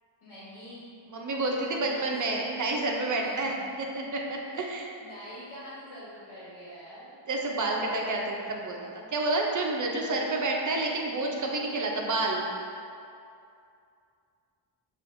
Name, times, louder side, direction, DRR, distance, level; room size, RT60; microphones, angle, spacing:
voice 1, 0.2-0.8 1.8-2.1 3.2-3.6 4.5-4.7 5.0-7.2, equal, 85° left, -9 dB, 1.2 m, -45 dB
voice 2, 1.1-3.5 3.9-4.9 7.3-12.5, right 2 dB, 40° right, 0 dB, 0.6 m, -29 dB
6.3 x 2.5 x 2.5 m, 2.5 s
wide cardioid pair, 100°, 48 cm